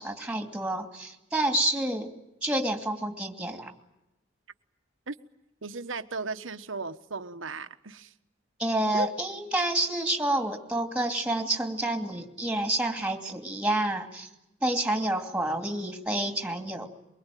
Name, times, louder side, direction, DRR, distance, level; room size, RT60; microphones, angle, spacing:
voice 1, 0.0-2.1 2.4-3.7 8.6-14.3 14.6-16.9, right 1 dB, 5° right, 2.6 m, -29 dB
voice 2, 5.6-8.1 8.9-9.1, right 3 dB, 85° right, 1.3 m, -36 dB
23.5 x 23.5 x 9.2 m
head